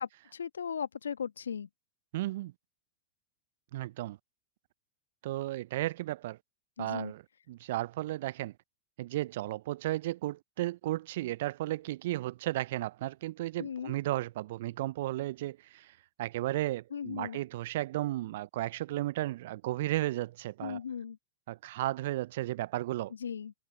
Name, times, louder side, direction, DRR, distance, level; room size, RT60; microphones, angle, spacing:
voice 1, 0.0-1.7 6.8-7.1 13.6-14.0 16.9-17.4 20.6-21.2 23.1-23.5, left 7 dB, 75° left, 1.6 m, -37 dB
voice 2, 2.1-2.5 3.7-4.2 5.2-6.4 6.8-7.2 7.5-8.5 9.0-20.8 21.5-23.1, right 16 dB, 55° right, 0.7 m, -34 dB
figure-of-eight pair, 95°, 0 cm